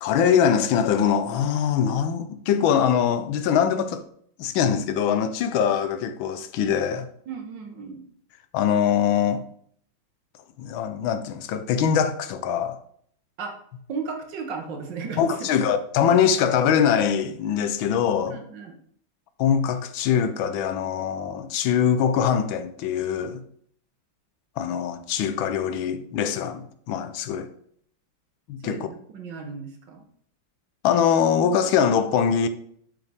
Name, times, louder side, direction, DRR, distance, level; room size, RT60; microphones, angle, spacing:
voice 1, 0.0-4.0 4.4-7.1 8.5-9.4 10.6-12.8 15.2-18.4 19.4-23.4 24.6-27.5 28.5-28.9 30.8-32.5, left 8 dB, 85° left, 1.5 m, -23 dB
voice 2, 7.3-8.0 13.4-13.6 13.9-15.5 18.3-18.7 28.6-30.1, right 5 dB, 65° right, 1.7 m, -35 dB
7.5 x 5.6 x 3.5 m
omnidirectional pair, 2.1 m